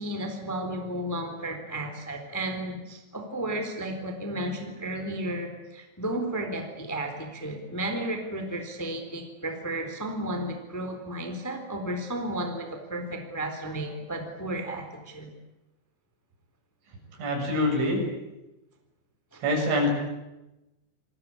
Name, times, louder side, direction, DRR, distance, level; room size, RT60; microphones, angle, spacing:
voice 1, 0.0-15.3 19.3-19.4, right 1 dB, 5° left, 5 dB, 2.9 m, -33 dB
voice 2, 17.2-18.0 19.4-19.9, left 1 dB, 75° right, 2 dB, 9.4 m, -25 dB
28.5 x 20.5 x 8.7 m, 0.98 s
omnidirectional pair, 5.5 m